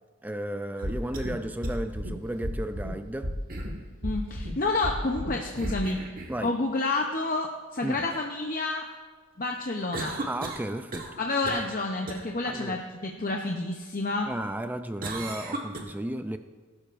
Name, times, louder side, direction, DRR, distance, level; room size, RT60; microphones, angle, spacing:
voice 1, 0.2-3.4 6.3-6.5 7.8-8.1 10.3-11.2 11.5-11.6 12.4-12.8 14.3-16.4, right 1 dB, 10° right, 9 dB, 0.4 m, -34 dB
sound 1, 0.8-1.3 1.6-1.7 3.5-3.8 5.6-6.4 9.9-11.2 11.5-11.7 12.1-12.2 15.0-15.8, right 2 dB, 40° right, 1.3 m, -36 dB
sound 2, 0.8-1.3 1.6-2.1 2.4-2.9 3.2-3.7 4.0-4.5 4.8-5.3 5.6-5.7, equal, 85° right, 2.1 m, -32 dB
voice 2, 4.0-6.0 6.4-8.8 9.4-10.2 11.2-14.3, left 2 dB, 40° left, 2 dB, 0.7 m, -29 dB
18.5 x 11.5 x 2.5 m, 1.4 s
head